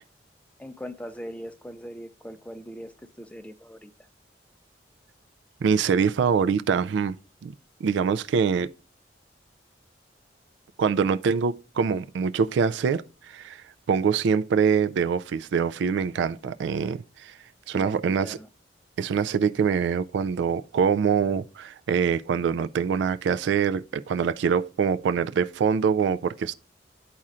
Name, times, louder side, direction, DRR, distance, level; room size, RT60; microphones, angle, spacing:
voice 1, 0.6-3.9 17.7-18.5, equal, 5° left, 0.4 m, -40 dB
voice 2, 5.6-7.2 7.4-7.5 7.8-8.7 10.8-17.3 17.7-18.4 19.0-26.5, right 6 dB, 75° right, 0.3 m, -24 dB
12.0 x 4.2 x 2.4 m
head